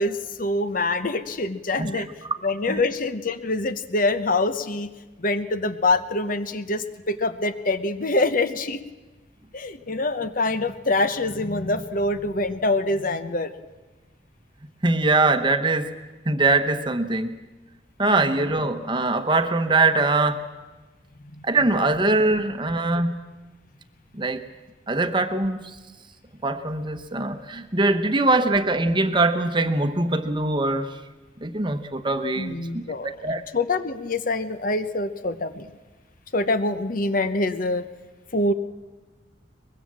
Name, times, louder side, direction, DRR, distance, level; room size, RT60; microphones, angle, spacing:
voice 1, 0.0-2.1 2.4-4.9 5.2-8.8 9.5-13.5 18.1-18.5 21.3-21.4 32.4-35.7 36.3-37.8 38.3-38.5, left 2 dB, 45° left, 11 dB, 0.9 m, -25 dB
voice 2, 14.8-15.9 16.3-17.4 18.0-20.4 21.4-23.2 24.1-24.4 24.9-25.7 26.4-30.9 31.4-32.8 33.2-33.4, right 2 dB, 25° right, 9 dB, 1.0 m, -22 dB
23.0 x 21.0 x 7.5 m, 1.2 s
head